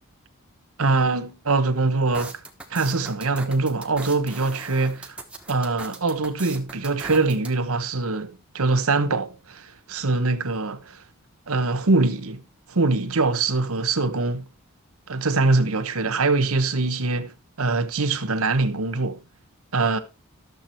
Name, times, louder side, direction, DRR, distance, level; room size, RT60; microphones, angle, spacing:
voice 1, 0.8-2.3 2.7-5.1 5.5-11.0 11.5-12.4 12.7-14.5 15.1-17.3 17.6-19.2 19.7-20.0, right 3 dB, 75° right, 1.2 m, -23 dB
sound 1, 2.1-7.5, right 2 dB, 5° right, 1.2 m, -39 dB
12.0 x 7.3 x 4.4 m
head